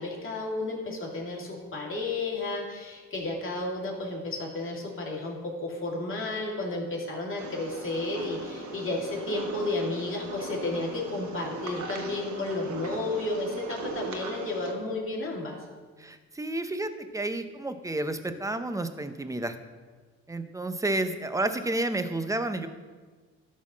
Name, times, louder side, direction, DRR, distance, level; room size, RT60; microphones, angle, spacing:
voice 1, 0.0-15.6, left 2 dB, 45° left, -2 dB, 2.5 m, -32 dB
sound 1, 7.4-14.7, right 3 dB, 70° right, 1.4 m, -39 dB
voice 2, 16.0-19.5 20.3-22.7, right 2 dB, 10° right, 9 dB, 0.7 m, -31 dB
12.5 x 4.2 x 6.2 m, 1.4 s
cardioid pair, 90°, 30 cm